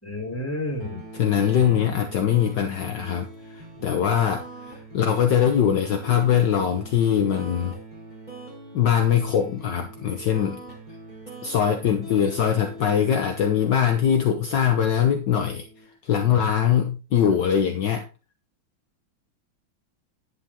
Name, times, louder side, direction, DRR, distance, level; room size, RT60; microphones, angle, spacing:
voice 1, 0.0-1.0 1.6-1.9, left 1 dB, 5° left, 0 dB, 3.5 m, -31 dB
sound 1, 0.8-15.9, right 2 dB, 20° right, 3.8 m, -42 dB
voice 2, 1.1-7.8 8.7-10.6 11.4-15.7 16.0-18.1, left 8 dB, 65° left, 5 dB, 1.5 m, -22 dB
10.5 x 8.1 x 3.7 m, 0.32 s
omnidirectional pair, 2.3 m